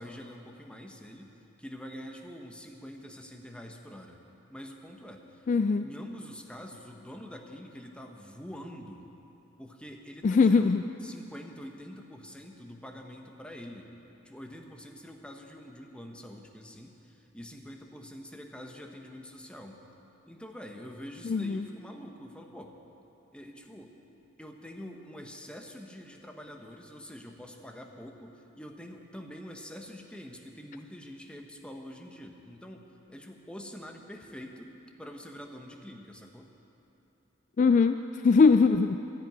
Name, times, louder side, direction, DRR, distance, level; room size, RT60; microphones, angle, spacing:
voice 1, 0.0-4.2 4.5-5.5 5.8-9.1 9.6-13.9 14.2-19.8 20.3-22.8 23.3-23.9 24.4-36.5, equal, 5° left, 2 dB, 1.1 m, -45 dB
voice 2, 5.5-5.9 10.2-10.8 21.2-21.7 37.6-39.0, left 4 dB, 40° left, 9 dB, 0.3 m, -22 dB
12.5 x 10.5 x 9.1 m, 2.9 s
head